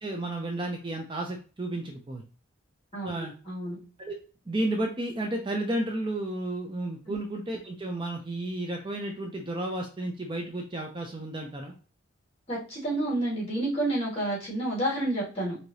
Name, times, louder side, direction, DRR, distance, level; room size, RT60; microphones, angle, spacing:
voice 1, 0.0-2.2 3.0-3.3 4.0-4.1 4.5-11.7, right 1 dB, 25° right, 1 dB, 0.5 m, -32 dB
voice 2, 2.9-3.8 7.1-7.2 12.5-15.7, right 1 dB, 30° left, -4 dB, 2.1 m, -30 dB
4.7 x 2.8 x 2.7 m, 0.36 s
head